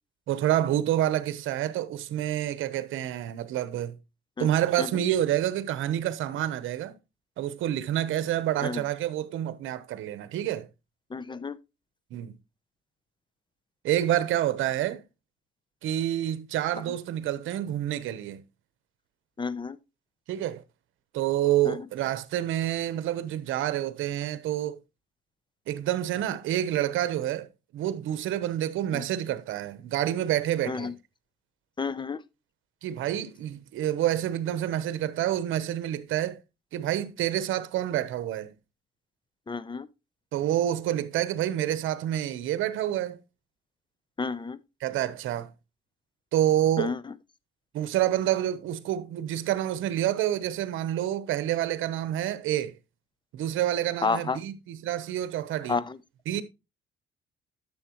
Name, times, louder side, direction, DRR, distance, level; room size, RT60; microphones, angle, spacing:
voice 1, 0.3-4.0 4.4-6.9 7.4-10.7 12.1-12.4 13.8-15.0 15.8-18.4 20.3-20.6 21.1-24.8 25.7-27.5 27.7-30.9 32.8-36.4 36.7-38.5 40.3-43.2 44.8-45.5 46.3-46.9 47.7-52.7 53.3-55.8 56.3-56.4, right 12 dB, 85° right, 0.9 m, -28 dB
voice 2, 11.1-11.6 19.4-19.8 21.6-21.8 28.9-29.0 30.7-30.9 31.8-32.2 39.5-39.9 44.2-44.6 46.8-47.1 54.0-54.4 55.7-56.0, left 4 dB, 25° left, 0.7 m, -30 dB
11.0 x 7.1 x 3.0 m
cardioid pair, 90°, 20 cm